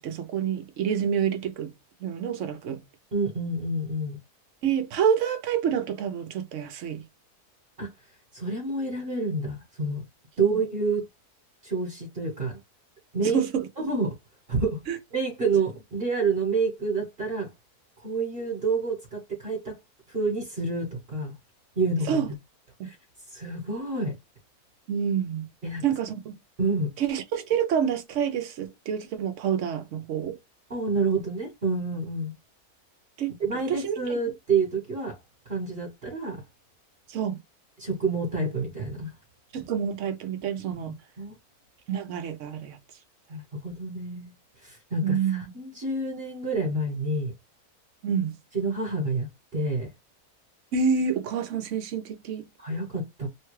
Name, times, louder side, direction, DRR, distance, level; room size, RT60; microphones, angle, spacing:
voice 1, 0.0-1.7 2.0-2.8 4.6-7.0 13.3-13.7 14.9-15.0 22.1-22.3 22.8-22.9 24.9-25.5 25.8-26.4 27.0-30.4 33.2-33.4 33.7-33.8 37.1-37.4 39.5-41.0 41.9-42.8 45.0-45.4 48.0-48.3 50.7-52.5, right 7 dB, 65° right, 0.9 m, -27 dB
voice 2, 3.1-4.2 7.8-7.9 8.3-10.0 10.4-11.1 11.6-12.6 13.1-13.4 13.8-14.1 14.5-17.5 18.0-19.7 20.1-21.3 21.7-22.2 22.8-23.0 23.3-24.1 25.6-25.8 26.6-26.9 30.7-32.3 33.4-35.2 35.4-36.4 37.8-39.1 40.8-41.3 43.3-44.3 44.6-47.3 48.5-49.9 52.6-53.3, right 3 dB, 40° right, 1.3 m, -28 dB
3.1 x 2.2 x 3.1 m
omnidirectional pair, 1.6 m